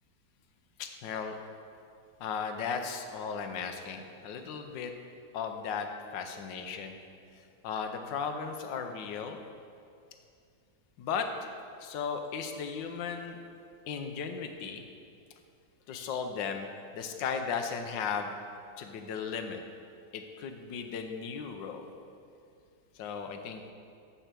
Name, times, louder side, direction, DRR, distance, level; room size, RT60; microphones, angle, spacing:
voice 1, 0.8-1.4 2.2-4.9 5.3-7.0 7.4-9.4 11.0-11.5 11.8-13.4 13.9-14.8 15.9-18.3 18.8-19.6 20.1-21.9 22.9-23.6, left 6 dB, 80° left, 6 dB, 1.4 m, -36 dB
6.7 x 6.7 x 7.4 m, 2.4 s
omnidirectional pair, 2.0 m